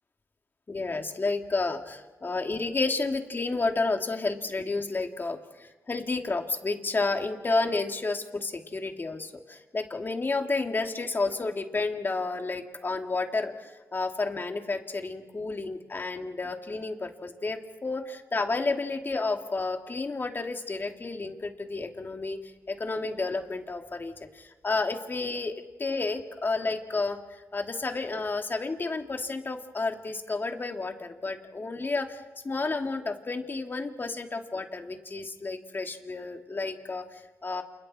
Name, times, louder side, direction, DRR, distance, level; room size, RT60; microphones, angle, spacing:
voice 1, 0.7-22.4 22.7-25.5 25.8-37.6, left 3 dB, 35° left, 4 dB, 2.6 m, -31 dB
29.0 x 29.0 x 4.4 m, 1.2 s
cardioid pair, 65°, 6 cm